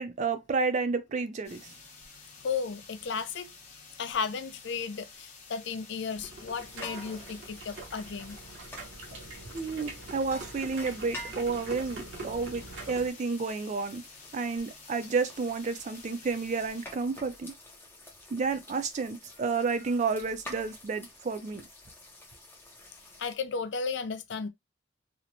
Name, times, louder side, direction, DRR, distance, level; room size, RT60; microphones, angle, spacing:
voice 1, 0.0-1.7 9.5-14.0 14.3-17.5 18.3-21.6, right 4 dB, 40° right, 0.4 m, -31 dB
sound 1, 1.4-16.9, left 4 dB, 40° left, 0.8 m, -51 dB
voice 2, 2.4-3.5 4.0-8.4 23.2-24.5, left 5 dB, 65° left, 0.4 m, -34 dB
sound 2, 6.1-13.1, right 2 dB, 75° right, 0.7 m, -44 dB
sound 3, 6.5-23.3, left 1 dB, 10° left, 0.6 m, -49 dB
2.9 x 2.0 x 2.6 m
head